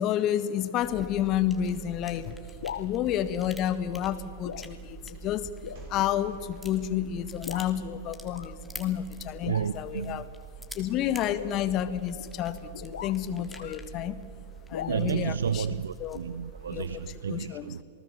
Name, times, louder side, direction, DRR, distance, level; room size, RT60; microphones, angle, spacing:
voice 1, 0.0-2.4 2.8-5.5 5.9-10.2 10.7-14.2 14.7-15.6 16.0-16.2 16.7-17.0 17.3-17.6, left 11 dB, 40° left, 1.6 m, -30 dB
sound 1, 0.8-17.2, right 4 dB, 5° left, 2.7 m, -45 dB
sound 2, 2.5-2.9 3.8-4.1 4.4-4.7 5.1-5.2 5.6-5.9 6.6-6.7 7.4-7.7 8.3-8.6 9.4-9.9 11.2-13.8 14.7-14.9, left 9 dB, 70° left, 0.6 m, -41 dB
sound 3, 5.7-8.0, right 3 dB, 55° right, 6.4 m, -56 dB
voice 2, 9.4-10.3 14.9-17.8, right 7 dB, 75° right, 0.6 m, -31 dB
28.0 x 19.0 x 7.2 m
figure-of-eight pair, 100°, 0 cm